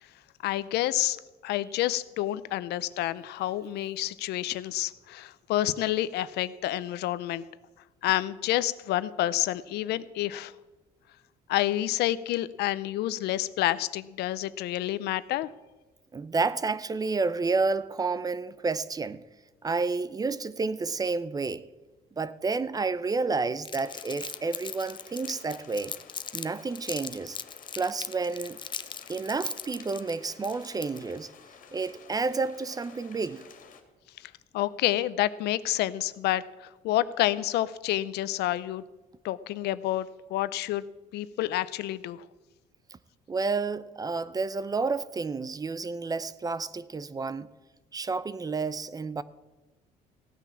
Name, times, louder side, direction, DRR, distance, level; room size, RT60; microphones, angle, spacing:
voice 1, 0.4-1.2 1.4-7.4 8.0-10.5 11.5-15.5 34.2-38.8 39.2-40.8 41.1-42.2, left 14 dB, 80° left, 0.6 m, -29 dB
voice 2, 16.1-19.2 19.6-21.7 22.2-25.9 26.3-27.4 27.8-28.6 29.1-31.3 31.7-33.5 43.3-47.5 47.9-49.2, right 4 dB, 20° right, 0.6 m, -30 dB
Crumpling crinkling, 23.6-26.5 26.7-31.2, left 6 dB, 30° left, 0.6 m, -39 dB
sound 1, 23.8-33.8, left 6 dB, 50° left, 2.2 m, -52 dB
16.0 x 9.2 x 7.0 m
cardioid pair, 110°, 17 cm